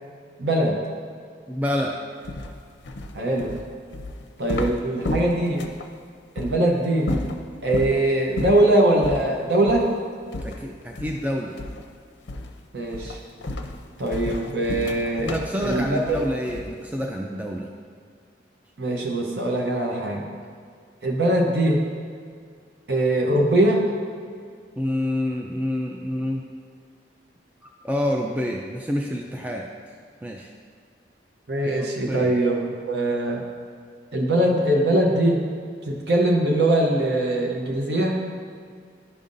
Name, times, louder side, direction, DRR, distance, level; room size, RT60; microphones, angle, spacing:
voice 1, 0.4-0.8 3.1-3.6 4.4-5.6 6.4-7.1 7.6-9.9 12.7-13.2 14.0-15.3 15.6-16.2 18.8-20.2 21.0-21.8 22.9-23.8 31.5-33.4 34.1-35.4 35.9-38.2, right 1 dB, 65° right, 0 dB, 0.7 m, -21 dB
voice 2, 1.5-2.0 10.4-11.6 15.2-17.7 24.8-26.4 27.6-29.6 30.2-30.5 31.6-32.3, left 1 dB, 10° right, 0 dB, 0.3 m, -28 dB
sound 1, 2.2-5.9 6.4-6.5 7.0-8.0 8.4-8.7 9.0-9.3 9.7-9.9 10.3-11.3 11.6-11.9 12.3-12.6 12.9-16.9, left 2 dB, 75° left, 0.5 m, -32 dB
11.0 x 5.3 x 2.6 m, 2.1 s
head